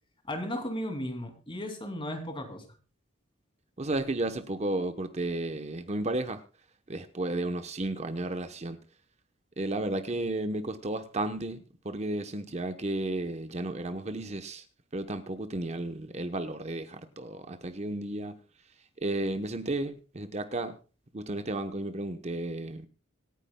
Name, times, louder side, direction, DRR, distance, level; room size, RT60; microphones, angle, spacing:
voice 1, 0.3-2.7, left 1 dB, 25° left, 2.6 m, -35 dB
voice 2, 3.8-6.4 6.9-8.8 9.6-14.6 14.9-18.3 19.0-20.8 21.1-22.9, right 2 dB, 30° right, 0.9 m, -33 dB
26.0 x 9.7 x 2.2 m
head